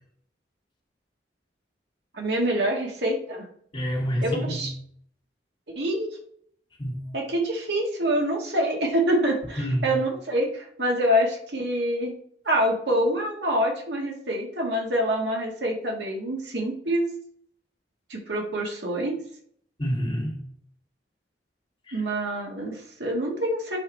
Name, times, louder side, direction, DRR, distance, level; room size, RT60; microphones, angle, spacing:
voice 1, 2.1-3.5 4.2-4.7 5.7-6.2 7.1-12.1 12.4-17.1 18.1-19.2 21.9-23.8, right 1 dB, 70° right, 0 dB, 1.7 m, -26 dB
voice 2, 3.7-4.6 6.8-7.0 9.6-9.9 19.8-20.4 21.9-22.0, equal, 30° left, -4 dB, 2.9 m, -27 dB
7.8 x 5.8 x 3.3 m, 0.63 s
head